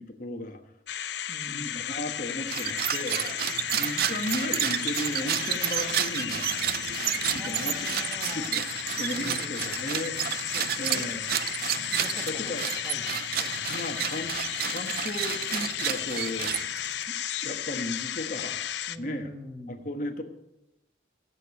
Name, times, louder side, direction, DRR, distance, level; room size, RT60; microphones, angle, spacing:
voice 1, 0.2-0.6 1.5-6.5 7.3-7.9 8.3-8.6 9.0-10.2 10.8-11.2 12.3-12.6 13.7-14.3 14.6-16.5 17.1-17.2 17.4-18.6 19.0-19.3 19.7-20.2, left 1 dB, 45° left, 4 dB, 1.3 m, -35 dB
sound 1, 0.9-19.0, left 10 dB, 70° left, 0.6 m, -34 dB
voice 2, 1.3-1.9 7.4-8.5 9.2-11.1 11.7-13.7 18.9-19.8, equal, 5° right, 2 dB, 2.0 m, -45 dB
sound 2, 2.4-17.0, right 11 dB, 50° right, 0.4 m, -31 dB
16.5 x 8.1 x 8.3 m, 0.93 s
head